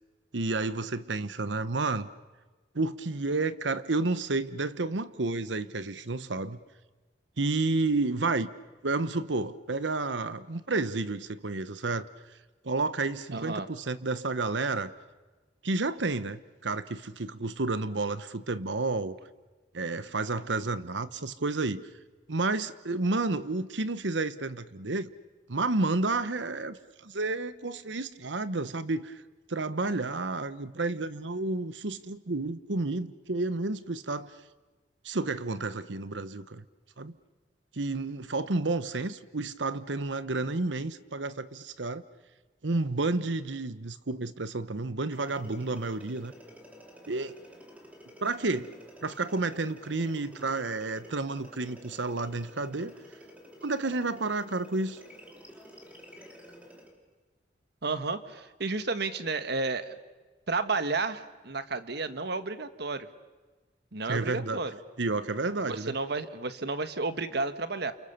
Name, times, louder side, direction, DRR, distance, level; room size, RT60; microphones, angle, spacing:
voice 1, 0.3-2.1 2.7-6.6 7.4-8.5 8.8-12.1 12.6-14.9 15.6-19.2 19.7-21.8 22.3-25.1 25.5-29.2 29.5-34.3 35.0-36.6 37.0-37.1 37.7-42.0 42.6-46.3 47.1-47.4 48.2-48.7 49.0-53.0 53.6-55.0 64.1-64.6 65.0-66.0, right 3 dB, 90° right, 13 dB, 1.1 m, -31 dB
voice 2, 13.3-13.7 57.8-59.9 60.5-63.1 63.9-64.7 65.6-67.9, right 3 dB, 65° right, 10 dB, 1.5 m, -32 dB
sound 1, 45.1-57.0, equal, 10° right, 3.5 m, -51 dB
29.5 x 29.0 x 6.9 m, 1.2 s
head